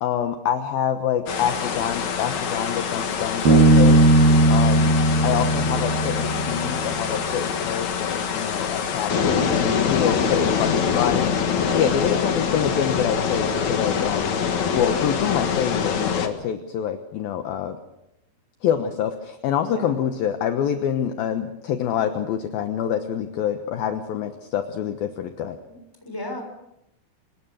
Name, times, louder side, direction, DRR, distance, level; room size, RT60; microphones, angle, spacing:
voice 1, 0.0-4.0 4.5-5.0 5.2-17.8 18.6-25.6, left 9 dB, 70° left, 7 dB, 2.5 m, -26 dB
sound 1, 1.3-16.3, left 6 dB, 50° left, 2.4 m, -25 dB
Bass guitar, 3.5-7.0, right 2 dB, 50° right, 8.8 m, -17 dB
voice 2, 11.6-11.9 19.6-20.0 25.7-26.4, left 2 dB, 5° left, 2 dB, 6.2 m, -34 dB
26.0 x 21.5 x 6.5 m, 0.84 s
omnidirectional pair, 5.4 m